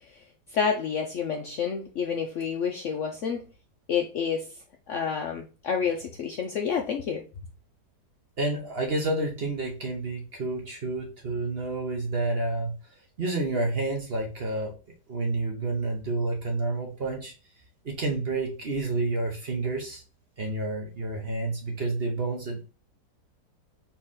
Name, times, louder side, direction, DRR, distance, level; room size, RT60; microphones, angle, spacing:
voice 1, 0.5-3.4 3.9-4.5 4.9-7.2, left 6 dB, 65° left, 0.7 m, -29 dB
voice 2, 8.4-12.7 13.2-14.7 15.1-17.3 17.8-20.0 20.4-22.7, right 2 dB, 45° right, 0.9 m, -29 dB
4.3 x 3.1 x 3.6 m
omnidirectional pair, 1.8 m